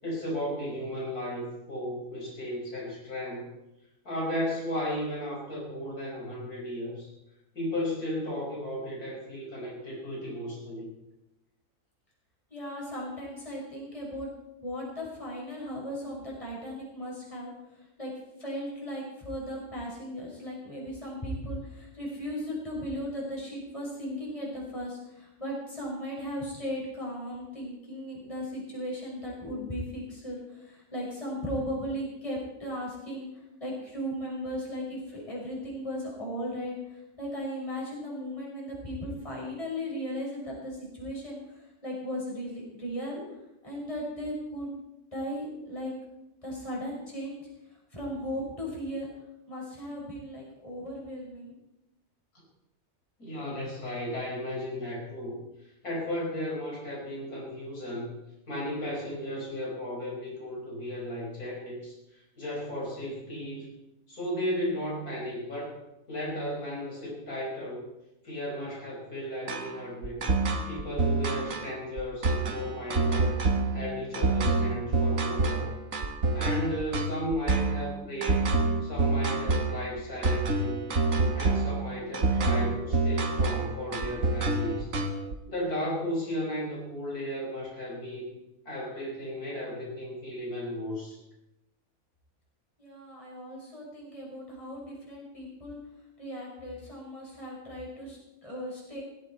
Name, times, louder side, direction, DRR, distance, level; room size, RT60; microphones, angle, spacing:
voice 1, 0.0-3.5 4.0-7.1 7.5-10.9 53.2-55.4 55.8-58.1 58.5-63.7 64.1-65.8 66.1-67.8 68.2-70.2 70.7-73.4 73.7-75.7 76.3-78.6 78.8-80.9 81.3-84.9 85.5-88.4 88.7-91.2, equal, 80° left, -3 dB, 6.0 m, -35 dB
voice 2, 12.5-14.3 14.6-17.5 18.0-18.1 18.4-43.2 43.6-44.7 45.1-45.9 46.4-47.5 47.9-49.1 49.5-51.6 92.8-95.8 96.2-99.0, equal, 20° left, -4 dB, 6.4 m, -37 dB
sound 1, 69.5-85.3, right 3 dB, 60° right, 1.9 m, -27 dB
17.0 x 16.5 x 4.5 m, 0.90 s
omnidirectional pair, 1.6 m